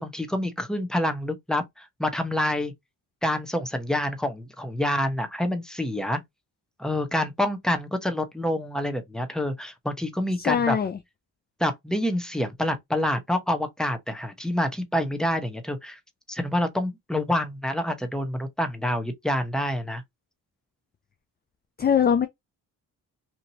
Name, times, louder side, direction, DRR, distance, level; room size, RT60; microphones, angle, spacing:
voice 1, 0.0-2.7 3.2-6.2 6.8-10.8 11.6-16.0 16.3-20.0, left 1 dB, ahead, 0.8 m, -27 dB
voice 2, 10.4-11.0 21.8-22.3, left 7 dB, 25° left, 0.3 m, -22 dB
2.9 x 2.6 x 2.7 m
supercardioid pair, 60°, 43 cm